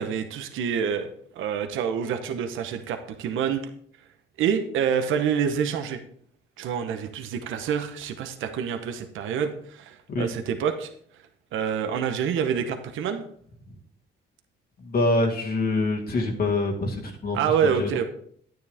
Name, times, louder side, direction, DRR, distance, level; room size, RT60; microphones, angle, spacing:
voice 1, 0.0-3.7 4.4-6.0 6.6-10.9 11.5-13.3 17.3-18.0, right 7 dB, 85° right, 7 dB, 1.0 m, -27 dB
voice 2, 14.8-17.4 17.8-17.9, left 2 dB, 50° left, 0 dB, 2.0 m, -25 dB
9.6 x 9.5 x 3.6 m, 0.62 s
cardioid pair, 90°, 20 cm